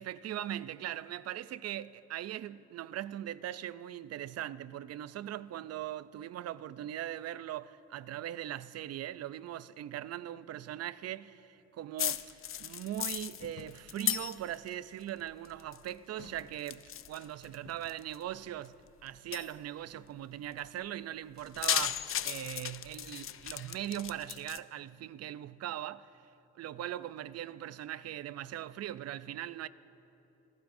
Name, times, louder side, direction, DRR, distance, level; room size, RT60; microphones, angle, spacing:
voice 1, 0.0-26.2 26.6-29.7, right 12 dB, 55° right, 0.5 m, -40 dB
sound 1, 12.0-14.7 15.0-15.9 16.2-18.2 18.7-18.8 19.3-19.5 21.4-24.6, left 10 dB, 45° left, 0.5 m, -36 dB
27.0 x 14.5 x 2.6 m
cardioid pair, 90°, 30 cm